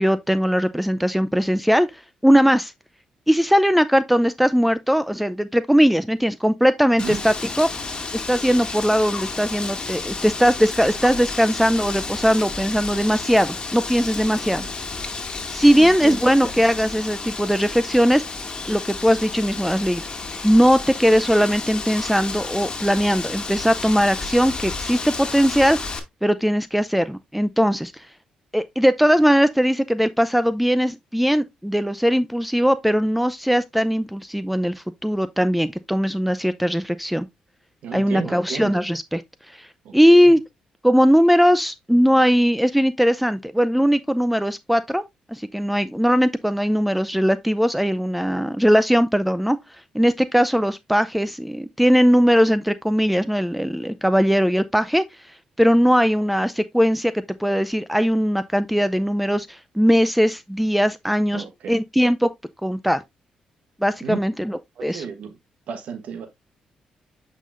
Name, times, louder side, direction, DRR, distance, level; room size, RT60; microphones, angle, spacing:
voice 1, 0.0-1.9 2.2-2.7 3.3-7.7 8.1-14.7 15.5-18.2 18.7-20.0 20.4-25.8 26.2-28.0 28.5-37.3 37.9-39.2 39.6-39.7 39.9-40.4 40.8-45.0 45.3-49.6 49.9-55.0 55.6-62.3 62.6-63.0 63.8-65.0, equal, ahead, 0.5 m, -19 dB
Wind, 7.0-26.0, left 3 dB, 35° left, 2.0 m, -31 dB
voice 2, 15.7-16.2 37.8-38.9 39.8-40.4 61.3-61.7 64.0-64.2 64.8-65.4 65.7-66.3, right 6 dB, 75° right, 1.3 m, -33 dB
8.2 x 5.6 x 2.5 m
cardioid pair, 70°, 2 cm